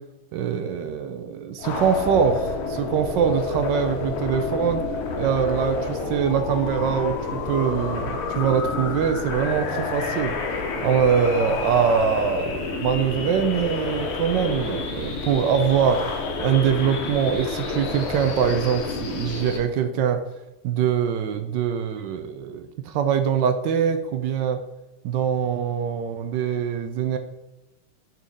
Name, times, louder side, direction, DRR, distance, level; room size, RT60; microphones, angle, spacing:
voice 1, 0.3-4.8 5.2-10.3 10.8-16.0 16.4-20.2 20.6-24.6 25.0-27.2, right 7 dB, 75° right, 8 dB, 1.1 m, -23 dB
sound 1, 1.6-19.6, left 4 dB, 85° left, 1.9 m, -29 dB
7.2 x 4.1 x 3.9 m, 0.98 s
omnidirectional pair, 2.4 m